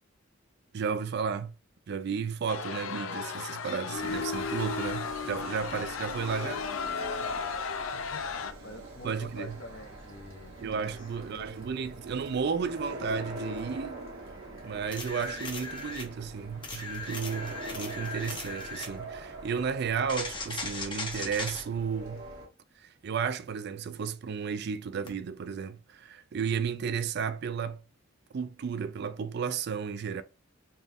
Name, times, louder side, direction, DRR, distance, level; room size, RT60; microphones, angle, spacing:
voice 1, 0.7-1.5 1.9-6.7 9.0-9.6 10.6-14.0 14.6-22.2 22.8-27.8 28.3-30.2, right 6 dB, 55° right, 0.4 m, -33 dB
sound 1, 2.5-8.5, left 5 dB, 80° left, 0.4 m, -34 dB
sound 2, 3.9-22.5, right 1 dB, 90° right, 1.7 m, -44 dB
voice 2, 7.9-11.0 11.2-11.5, left 1 dB, 65° left, 0.9 m, -47 dB
sound 3, 14.9-16.1 16.6-18.9 20.1-21.6 25.1-25.2, left 3 dB, 25° left, 0.9 m, -38 dB
4.2 x 2.4 x 3.4 m
head